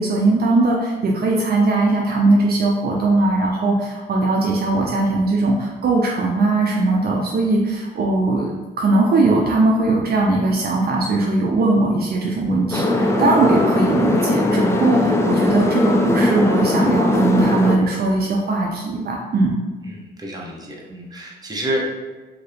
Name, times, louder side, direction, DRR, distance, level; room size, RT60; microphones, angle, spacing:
voice 1, 0.0-19.6, right 2 dB, 50° right, -1 dB, 0.5 m, -19 dB
sound 1, 12.7-17.8, left 1 dB, 15° left, 0.3 m, -19 dB
voice 2, 19.9-21.9, equal, 20° right, -2 dB, 0.8 m, -28 dB
2.7 x 2.6 x 3.3 m, 1.3 s
cardioid pair, 90°, 20 cm